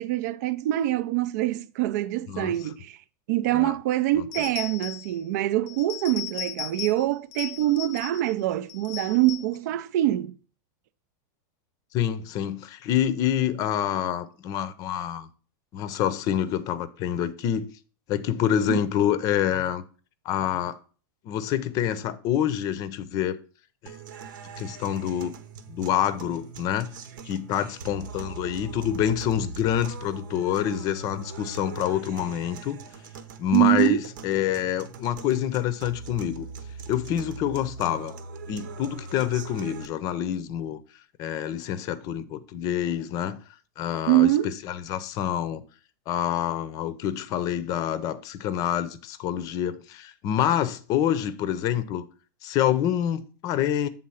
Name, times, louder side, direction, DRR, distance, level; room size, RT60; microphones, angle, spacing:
voice 1, 0.0-3.0 3.3-10.3 18.7-18.8 33.5-34.0 44.1-44.5, right 15 dB, 60° right, 0.5 m, -24 dB
sound 1, 4.3-5.2 5.7-7.0 7.3-8.3 8.7-9.6, left 13 dB, 75° left, 0.6 m, -37 dB
voice 2, 11.9-15.3 15.7-17.7 18.1-19.8 20.2-20.8 21.2-23.4 23.8-23.9 24.6-25.3 25.7-26.9 27.2-32.8 33.4-36.5 36.9-38.1 38.5-40.8 41.2-43.4 43.8-45.6 46.1-52.0 52.4-53.9, left 10 dB, 35° left, 0.6 m, -27 dB
sound 2, 23.9-39.9, right 4 dB, 80° right, 1.0 m, -41 dB
7.6 x 3.8 x 5.5 m
supercardioid pair, 150°, 11 cm